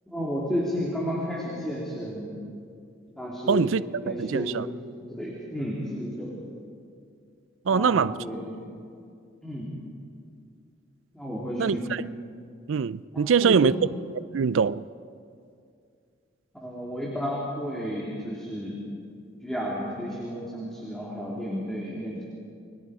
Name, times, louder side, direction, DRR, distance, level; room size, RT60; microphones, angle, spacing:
voice 1, 0.1-2.4 3.2-3.7 4.0-6.4 7.7-8.5 9.4-9.8 11.1-11.9 13.1-13.7 16.5-18.8 19.4-22.3, equal, ahead, 2.9 m, -32 dB
voice 2, 3.5-4.7 7.7-8.1 11.6-12.0 12.7-13.7 14.3-14.8, right 6 dB, 75° right, 0.4 m, -23 dB
29.5 x 22.0 x 4.9 m
head